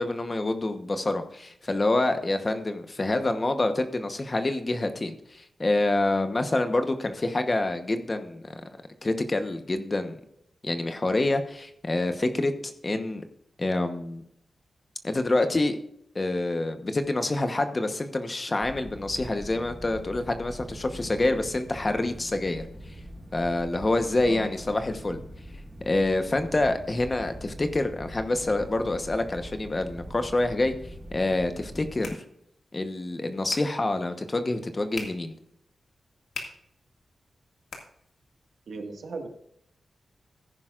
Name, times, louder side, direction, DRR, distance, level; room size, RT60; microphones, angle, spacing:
voice 1, 0.0-8.6 9.0-10.2 10.6-13.2 13.6-14.2 15.0-15.8 16.1-22.6 23.3-25.2 25.8-30.7 31.1-32.2 32.7-35.3, left 2 dB, 25° left, 7 dB, 1.0 m, -27 dB
sound 1, 18.6-32.1, equal, 15° right, 1.6 m, -43 dB
sound 2, 31.5-38.5, left 4 dB, 75° left, 2.0 m, -46 dB
voice 2, 38.7-39.3, right 4 dB, 75° right, 4 dB, 1.8 m, -36 dB
14.5 x 10.5 x 2.5 m, 0.74 s
wide cardioid pair, 160°, 0 cm